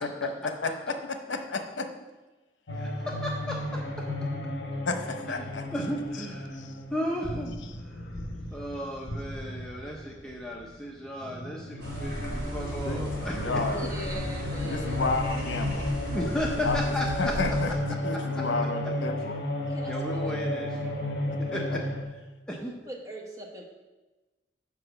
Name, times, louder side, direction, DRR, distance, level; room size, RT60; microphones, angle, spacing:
voice 1, 0.6-1.9 4.9-5.7 6.5-6.8 12.8-13.0 13.3-13.9 14.6-15.9 16.6-16.8 17.2-19.4 21.5-21.8, left 3 dB, 90° left, 6 dB, 0.8 m, -31 dB
sound 1, 2.7-10.8 11.1-22.0, left 1 dB, 70° left, 1.1 m, -33 dB
voice 2, 2.8-3.8 5.4-5.5 5.7-6.6 6.9-7.6 7.9-8.0 8.5-13.6 14.7-14.8 16.1-17.3 18.1-18.2 19.9-21.8 22.5-22.7, equal, 5° left, -2 dB, 0.6 m, -34 dB
sound 2, 11.8-17.7, equal, 50° right, 1.9 m, -36 dB
voice 3, 13.7-15.0 19.7-20.2 22.6-23.6, right 1 dB, 20° right, -2 dB, 1.2 m, -41 dB
6.0 x 5.1 x 6.8 m, 1.1 s
head